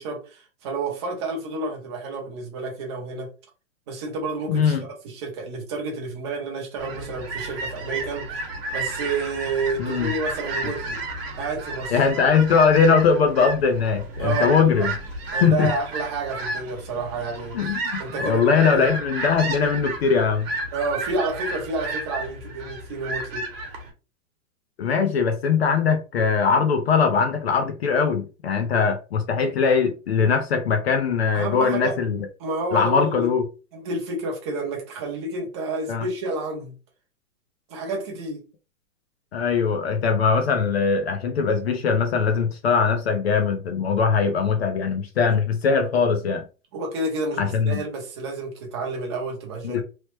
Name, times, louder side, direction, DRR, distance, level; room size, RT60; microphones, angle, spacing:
voice 1, 0.0-3.3 3.9-4.8 5.0-11.0 11.4-11.9 14.2-14.9 15.3-18.9 20.7-23.5 31.3-31.9 32.4-33.3 33.7-36.7 37.7-38.4 45.2-45.4 46.7-49.8, right 3 dB, 20° right, 0.6 m, -30 dB
voice 2, 4.5-4.8 9.8-10.1 11.9-14.9 15.4-15.7 17.5-20.5 24.8-32.3 32.7-33.4 35.9-36.0 39.3-46.4 47.4-47.8 49.6-49.8, left 5 dB, 50° left, 0.6 m, -21 dB
sound 1, 6.8-23.9, right 2 dB, 45° right, 1.1 m, -32 dB
3.1 x 2.0 x 3.1 m
hypercardioid pair, 165°, 40 cm